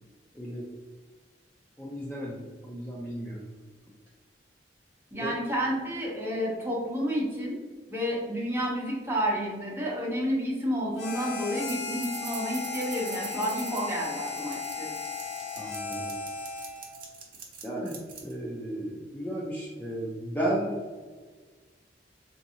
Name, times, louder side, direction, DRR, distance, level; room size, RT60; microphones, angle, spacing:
voice 1, 0.3-0.7 1.8-3.4 5.2-5.3 15.6-16.2 17.6-20.8, right 1 dB, 10° left, -6 dB, 0.5 m, -34 dB
voice 2, 5.1-7.6 7.9-14.9, equal, 15° right, -5 dB, 0.9 m, -30 dB
Harmonica, 11.0-17.0, left 4 dB, 65° left, 0.7 m, -36 dB
sound 1, 11.7-11.8 12.0-18.3, right 6 dB, 55° right, 0.7 m, -43 dB
3.8 x 2.6 x 2.8 m, 1.4 s
head